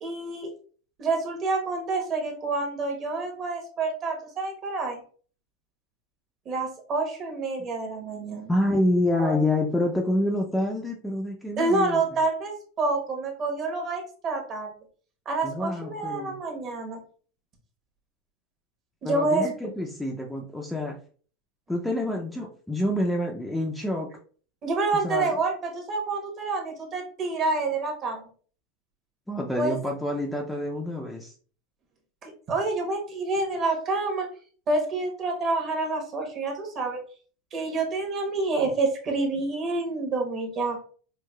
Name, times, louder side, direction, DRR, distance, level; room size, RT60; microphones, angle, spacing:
voice 1, 0.0-0.5 1.0-5.0 6.5-8.5 9.2-9.4 11.6-14.7 15.3-17.0 19.0-19.7 24.6-28.2 29.6-29.8 32.2-34.3 34.7-37.0 37.5-40.8, right 3 dB, 35° right, 2 dB, 1.0 m, -28 dB
voice 2, 8.5-12.0 15.4-16.4 19.0-21.0 21.7-24.1 25.0-25.3 29.3-31.3, left 1 dB, 5° left, 0 dB, 0.4 m, -27 dB
4.7 x 2.2 x 2.2 m, 0.43 s
supercardioid pair, 135°, 0 cm